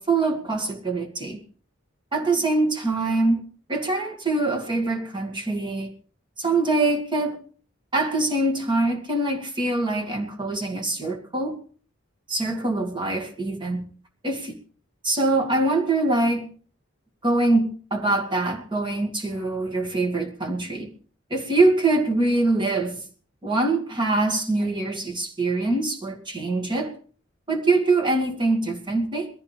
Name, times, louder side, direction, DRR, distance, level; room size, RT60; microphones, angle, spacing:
voice 1, 0.0-1.4 2.1-3.4 3.7-5.9 6.4-7.4 7.9-11.5 12.3-13.8 14.2-14.6 15.0-16.4 17.2-20.9 21.3-23.0 23.4-26.9 27.5-29.3, right 2 dB, 25° right, 2 dB, 2.2 m, -24 dB
21.5 x 14.5 x 3.4 m, 0.42 s
head